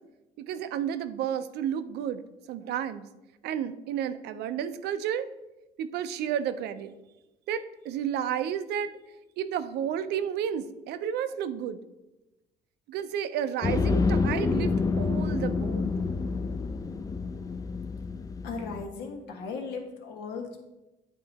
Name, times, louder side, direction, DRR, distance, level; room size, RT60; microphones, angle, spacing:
voice 1, 0.4-2.2 2.5-3.0 3.4-5.3 5.8-6.9 7.5-8.9 9.4-11.8 12.9-15.9, right 9 dB, 75° right, 11 dB, 0.5 m, -31 dB
sound 1, 13.6-18.8, left 4 dB, 20° left, 0.4 m, -28 dB
voice 2, 18.4-20.6, left 4 dB, 85° left, 3 dB, 1.2 m, -37 dB
9.2 x 3.8 x 4.1 m, 1.0 s
cardioid pair, 110°, 17 cm